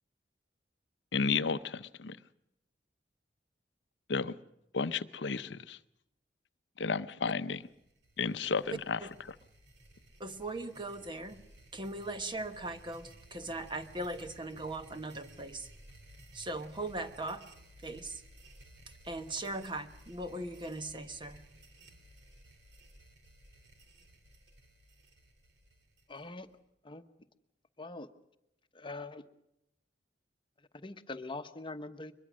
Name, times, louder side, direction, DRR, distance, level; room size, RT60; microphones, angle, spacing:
voice 1, 1.1-2.2 4.1-4.3 4.7-5.8 6.8-7.6 8.2-9.0 9.3-9.4, left 5 dB, 85° left, 0.7 m, -32 dB
sound 1, 7.5-26.6, right 1 dB, 75° right, 3.0 m, -57 dB
voice 2, 10.2-11.4 11.7-15.7 16.3-17.5 17.8-18.2 19.0-21.6, right 2 dB, 30° right, 1.2 m, -39 dB
voice 3, 26.1-26.5 26.8-27.1 27.8-28.1 28.7-29.2 30.6-32.1, left 2 dB, 30° left, 1.0 m, -43 dB
22.5 x 21.5 x 6.3 m
head